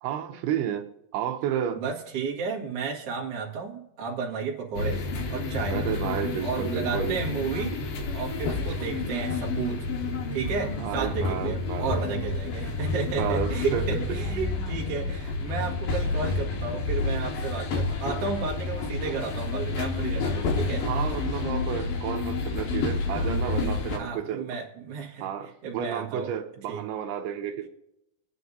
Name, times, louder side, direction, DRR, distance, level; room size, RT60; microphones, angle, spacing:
voice 1, 0.0-1.8 5.7-7.2 10.8-12.0 13.0-13.8 20.8-24.5 25.2-27.7, right 9 dB, 85° right, 5 dB, 2.8 m, -31 dB
voice 2, 1.8-5.8 6.4-7.8 8.1-9.9 10.3-20.9 24.0-26.3 26.7-26.8, right 5 dB, 45° right, -2 dB, 2.3 m, -33 dB
sound 1, 4.8-24.0, left 3 dB, 70° left, 3.0 m, -29 dB
25.0 x 9.7 x 2.7 m, 0.89 s
omnidirectional pair, 4.5 m